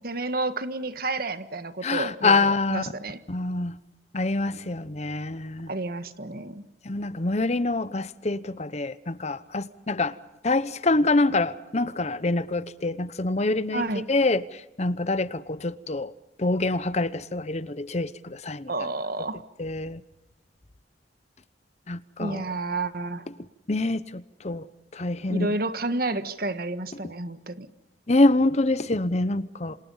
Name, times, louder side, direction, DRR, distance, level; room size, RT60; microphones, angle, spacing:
voice 1, 0.0-3.2 5.7-6.6 13.7-14.0 18.7-19.4 22.2-23.2 25.3-27.7, right 2 dB, 55° right, 1.6 m, -30 dB
voice 2, 1.8-2.9 3.3-3.7 4.1-5.7 6.8-10.2 10.4-16.1 16.4-18.7 19.6-20.0 21.9-22.4 23.7-24.7 24.9-25.5 28.1-29.8, left 2 dB, 40° left, 0.9 m, -26 dB
28.0 x 27.5 x 5.6 m
head